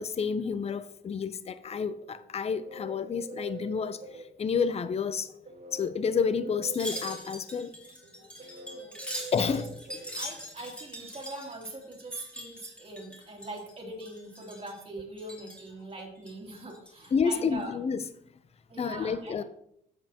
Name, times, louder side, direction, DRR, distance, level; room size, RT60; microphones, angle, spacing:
voice 1, 0.0-4.0 4.4-5.3 5.7-7.7 9.3-9.8 17.1-18.0 18.8-19.4, left 6 dB, 30° left, 0.6 m, -29 dB
sound 1, 2.2-10.9, right 4 dB, 45° right, 1.6 m, -45 dB
Wind chime, 6.6-13.7 14.0-14.8 15.2-15.7 16.2-17.1 17.5-17.6, equal, 5° left, 2.6 m, -42 dB
voice 2, 8.4-9.0 9.4-9.6 10.1-17.7 18.7-19.4, right 2 dB, 30° right, 2.9 m, -42 dB
8.9 x 7.7 x 2.9 m
cardioid pair, 90°, 20 cm